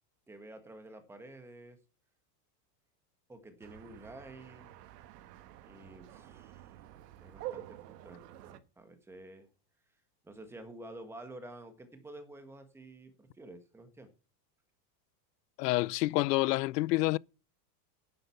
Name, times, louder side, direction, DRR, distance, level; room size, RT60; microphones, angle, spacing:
voice 1, 0.3-1.8 3.3-4.7 5.6-6.8 7.2-9.5 10.2-14.1, right 1 dB, 5° right, 1.5 m, -50 dB
sound 1, 3.6-8.6, right 14 dB, 75° right, 1.4 m, -48 dB
voice 2, 15.6-17.2, left 20 dB, 75° left, 0.6 m, -28 dB
11.0 x 7.9 x 5.8 m
supercardioid pair, 165°, 49 cm